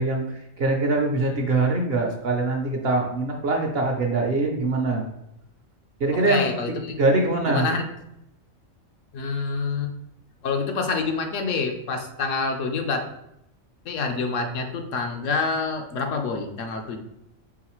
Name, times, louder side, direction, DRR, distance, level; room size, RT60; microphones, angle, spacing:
voice 1, 0.0-5.1 6.0-6.5 7.0-7.7, right 2 dB, 55° right, 2 dB, 0.8 m, -23 dB
voice 2, 6.1-7.1 7.5-7.9 9.1-9.9 10.4-13.1 13.9-17.0, left 4 dB, 70° left, 4 dB, 1.0 m, -27 dB
4.8 x 3.7 x 3.0 m, 0.84 s
omnidirectional pair, 1.4 m